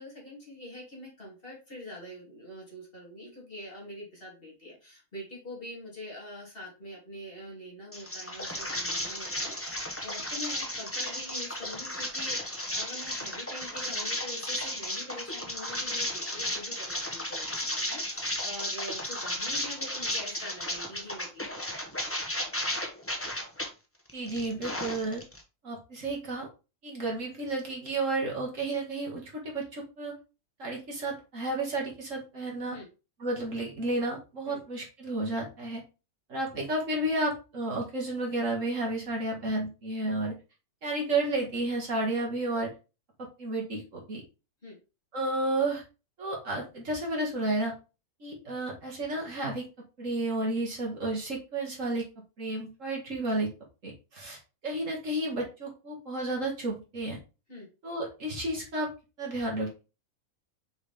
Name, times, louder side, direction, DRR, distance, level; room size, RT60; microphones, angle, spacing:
voice 1, 0.0-21.6 32.7-32.9 34.5-34.6 44.6-44.8 57.5-57.7, left 1 dB, 35° left, -5 dB, 3.2 m, -44 dB
sound 1, 7.9-23.7 24.1-25.4, left 1 dB, 10° left, 0.9 m, -34 dB
voice 2, 24.1-25.2 25.6-26.5 26.8-30.1 30.6-32.8 33.2-35.8 36.3-40.3 40.8-42.7 43.4-44.2 45.1-45.8 46.2-47.7 48.2-49.6 50.0-52.0 52.4-53.5 53.8-57.2 57.8-58.9 59.2-59.8, right 2 dB, 55° right, -2 dB, 2.3 m, -32 dB
6.3 x 4.9 x 3.5 m, 0.31 s
omnidirectional pair, 1.7 m